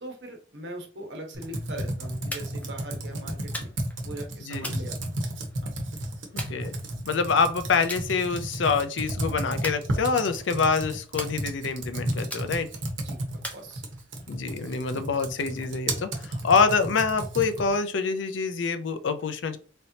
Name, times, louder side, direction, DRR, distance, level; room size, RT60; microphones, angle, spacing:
voice 1, 0.0-3.7 4.0-5.2 5.6-5.7 13.0-13.2 13.5-13.8, right 1 dB, 65° right, 3 dB, 1.2 m, -40 dB
Computer keyboard, 1.3-17.8, right 1 dB, 85° right, 1.1 m, -33 dB
sound 1, 2.3-2.7 3.5-4.0 4.6-5.6 6.4-7.2 7.9-8.1 8.5-8.8 9.6-10.4 11.2-11.8 12.3-12.8 13.4-14.2, left 1 dB, 10° left, 0.7 m, -39 dB
voice 2, 6.3-6.8 7.0-12.7 14.3-19.6, left 5 dB, 75° left, 10 dB, 0.5 m, -26 dB
4.1 x 3.3 x 2.8 m, 0.39 s
head